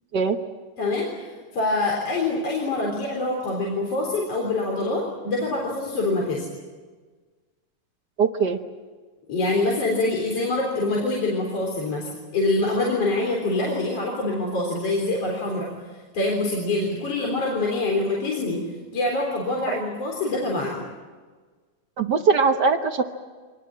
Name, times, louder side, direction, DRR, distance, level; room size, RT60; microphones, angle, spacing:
voice 1, 0.8-6.5 9.3-15.7 16.1-18.6 18.9-20.8, left 2 dB, 50° left, -1 dB, 4.8 m, -25 dB
voice 2, 8.2-8.6 19.7-19.8 22.0-23.0, right 5 dB, 65° right, 6 dB, 1.0 m, -21 dB
25.5 x 20.0 x 8.8 m, 1.4 s
omnidirectional pair, 3.4 m